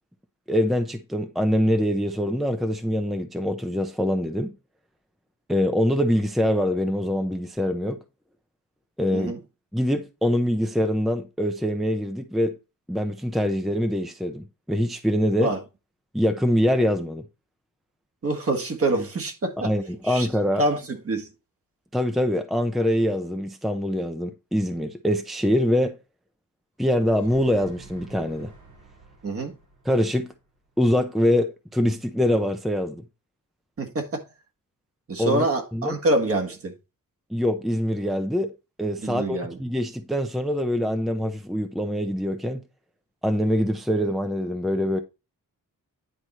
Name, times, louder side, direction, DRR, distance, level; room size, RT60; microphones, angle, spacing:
voice 1, 0.5-4.5 5.5-8.0 9.0-9.3 9.7-12.6 12.9-15.5 16.1-17.3 19.6-20.6 21.9-26.0 26.8-28.5 29.9-30.3 30.8-33.0 35.2-35.5 35.7-35.9 37.3-38.5 38.8-42.6 43.2-45.0, equal, ahead, 0.6 m, -24 dB
voice 2, 18.2-19.7 20.0-20.3 20.6-21.3 29.2-29.6 33.8-34.3 35.1-36.8 39.0-39.6, right 2 dB, 40° right, 1.8 m, -26 dB
sound 1, 27.1-31.0, right 3 dB, 85° right, 3.9 m, -50 dB
10.0 x 4.7 x 4.2 m
wide cardioid pair, 150°, 34 cm